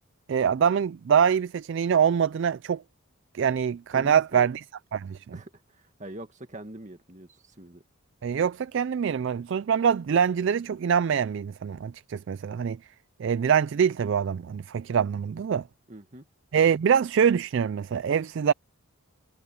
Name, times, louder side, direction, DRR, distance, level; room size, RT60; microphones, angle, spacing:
voice 1, 0.3-2.8 3.3-4.6 4.9-5.4 8.2-12.8 13.2-15.7 16.5-18.5, right 7 dB, 55° right, 0.3 m, -24 dB
voice 2, 3.9-4.6 5.3-7.8 15.9-16.3, right 1 dB, 35° right, 1.9 m, -43 dB
head